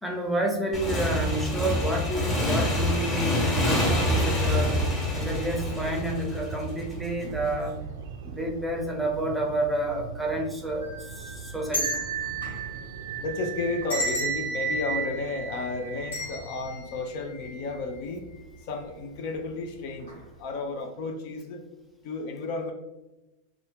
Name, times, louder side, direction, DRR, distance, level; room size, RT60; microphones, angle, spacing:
voice 1, 0.0-4.8 5.1-7.7 8.2-11.9, right 1 dB, 5° right, 0 dB, 0.7 m, -30 dB
Motorcycle / Engine, 0.7-7.1, left 1 dB, 25° left, 1.1 m, -26 dB
sound 1, 3.6-16.8, right 5 dB, 70° right, 0.3 m, -40 dB
sound 2, 10.8-18.0 18.3-18.4 19.4-19.6 20.0-20.2, right 3 dB, 90° left, 1.0 m, -33 dB
voice 2, 12.3-18.3 18.6-21.6 22.0-22.7, left 3 dB, 60° left, 4 dB, 0.4 m, -33 dB
2.5 x 2.2 x 3.4 m, 1.0 s
hypercardioid pair, 95°, 0 cm